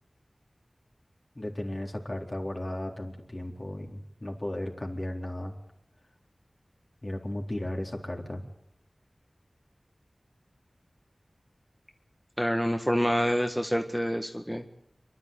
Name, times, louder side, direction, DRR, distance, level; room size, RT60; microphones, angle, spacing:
voice 1, 1.4-5.5 7.0-8.4, left 1 dB, 40° left, 1 dB, 4.1 m, -35 dB
voice 2, 12.4-14.6, equal, 5° left, 4 dB, 1.7 m, -27 dB
28.0 x 12.0 x 8.5 m, 0.76 s
wide cardioid pair, 50°, 0 cm